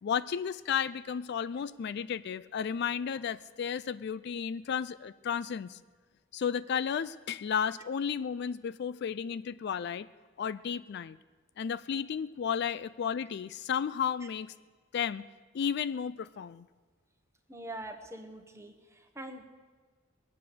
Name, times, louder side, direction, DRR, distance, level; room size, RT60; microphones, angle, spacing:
voice 1, 0.0-5.8 6.3-10.1 10.4-11.2 11.6-14.5 14.9-15.3 15.5-16.7, left 7 dB, 55° left, 16 dB, 0.3 m, -33 dB
voice 2, 17.5-19.4, right 1 dB, 15° right, 5 dB, 1.2 m, -44 dB
21.0 x 8.6 x 6.9 m, 1.4 s
head